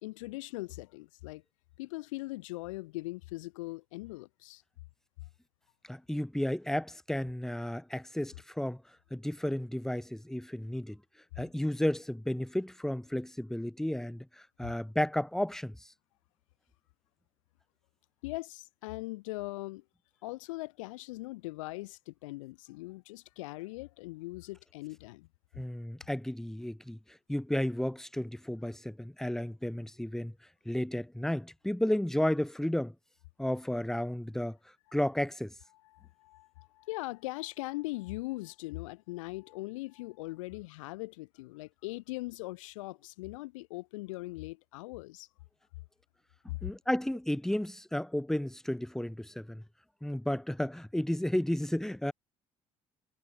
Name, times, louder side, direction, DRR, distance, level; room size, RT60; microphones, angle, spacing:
voice 1, 0.0-1.4 1.8-4.6 18.2-19.8 20.2-25.3 35.9-45.3, left 21 dB, 80° left, 0.7 m, -40 dB
voice 2, 5.9-8.8 9.1-11.0 11.4-15.9 25.6-30.3 30.7-32.9 33.4-34.6 34.9-35.5 46.4-49.6 50.0-52.1, left 1 dB, 5° left, 0.7 m, -33 dB
hypercardioid pair, 60°, 16 cm